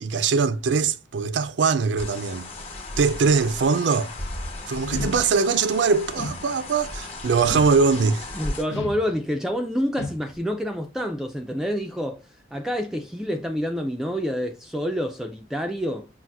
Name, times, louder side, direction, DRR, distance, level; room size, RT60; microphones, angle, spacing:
voice 1, 0.0-2.5 3.0-4.1 4.7-8.2, right 5 dB, 70° right, 0.4 m, -22 dB
sound 1, 2.0-8.6, left 2 dB, 35° left, 1.1 m, -35 dB
sound 2, 4.9-5.7 6.2-6.9 7.4-8.2 8.7-9.5 10.0-10.6, left 2 dB, 70° left, 0.7 m, -35 dB
voice 2, 8.3-12.2 12.5-16.1, equal, ahead, 0.3 m, -28 dB
5.7 x 2.5 x 2.4 m
head